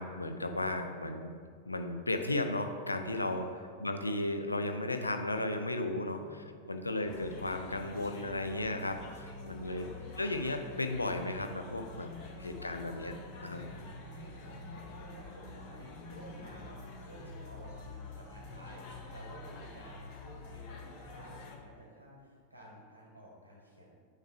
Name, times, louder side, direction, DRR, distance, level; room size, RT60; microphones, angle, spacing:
voice 1, 0.0-1.3 1.7-3.5 3.8-9.9 10.2-12.1 12.4-13.2 13.4-13.6, left 2 dB, 80° left, 6 dB, 0.5 m, -35 dB
voice 2, 3.0-3.6 6.0-6.6 9.4-10.3 11.8-12.4 13.4-23.9, equal, 90° right, -4 dB, 1.5 m, -53 dB
sound 1, 7.1-21.6, left 3 dB, 45° left, 0.8 m, -47 dB
8.8 x 3.3 x 4.7 m, 2.1 s
figure-of-eight pair, 90°, 0 cm